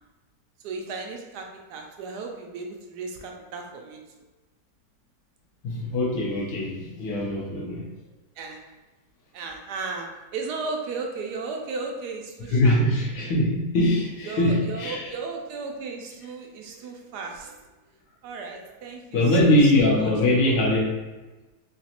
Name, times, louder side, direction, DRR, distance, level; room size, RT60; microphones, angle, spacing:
voice 1, 0.6-4.0 8.4-8.6 9.3-10.1 10.3-12.8 14.3-17.6 18.2-20.1 20.5-20.6, right 4 dB, 75° right, 2 dB, 1.1 m, -35 dB
voice 2, 5.6-7.8 12.4-15.1 19.1-21.0, left 1 dB, 80° left, -3 dB, 1.5 m, -22 dB
3.9 x 3.0 x 2.9 m, 1.1 s
omnidirectional pair, 1.9 m